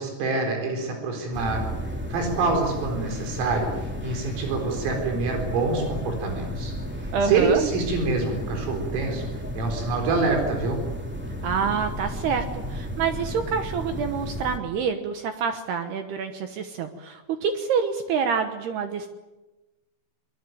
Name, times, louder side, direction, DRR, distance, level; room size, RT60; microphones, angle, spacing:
voice 1, 0.0-1.6 2.1-6.7 7.0-9.3 9.5-10.8, right 3 dB, 85° right, 3 dB, 6.7 m, -26 dB
sound 1, 1.3-14.6, equal, 5° right, 1.9 m, -33 dB
voice 2, 7.1-7.6 11.4-12.4 12.7-19.1, right 6 dB, 70° right, 7 dB, 2.8 m, -27 dB
23.5 x 21.5 x 9.3 m, 1.1 s
omnidirectional pair, 5.8 m